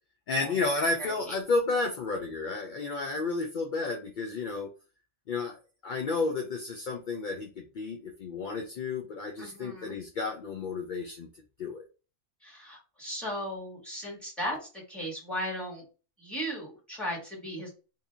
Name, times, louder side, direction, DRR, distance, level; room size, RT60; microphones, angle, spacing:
voice 1, 0.3-4.7 5.3-5.6 5.8-11.3 11.6-11.8, left 3 dB, 60° left, 2 dB, 0.5 m, -31 dB
voice 2, 1.0-1.3 9.4-10.0 12.4-15.8 16.2-17.7, equal, ahead, -3 dB, 1.4 m, -37 dB
2.7 x 2.6 x 3.4 m, 0.33 s
omnidirectional pair, 1.3 m